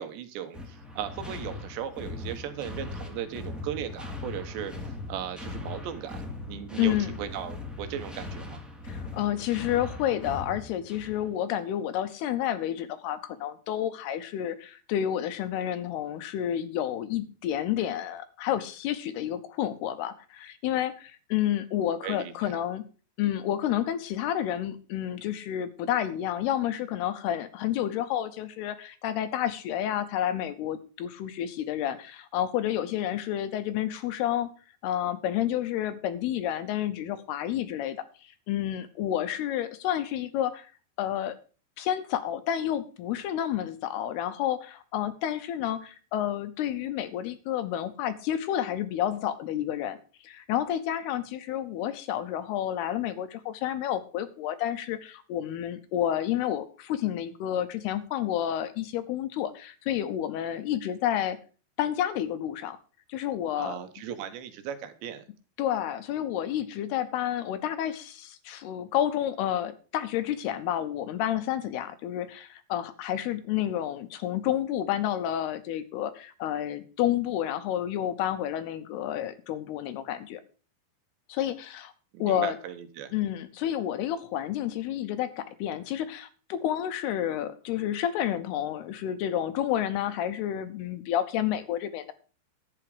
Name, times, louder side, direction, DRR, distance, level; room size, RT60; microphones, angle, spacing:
voice 1, 0.0-6.2 6.5-8.6 22.0-22.6 63.6-65.2 82.1-83.1, right 9 dB, 75° right, 9 dB, 3.3 m, -37 dB
sound 1, 0.5-11.3, left 2 dB, ahead, 0.9 m, -39 dB
voice 2, 6.8-7.1 8.8-22.8 23.2-34.5 34.8-40.7 41.0-41.4 41.8-61.4 61.8-62.8 63.1-63.8 65.6-80.4 81.3-81.9 82.2-82.6 83.1-92.1, left 11 dB, 80° left, 12 dB, 2.5 m, -30 dB
12.0 x 8.8 x 4.9 m, 0.36 s
omnidirectional pair, 5.2 m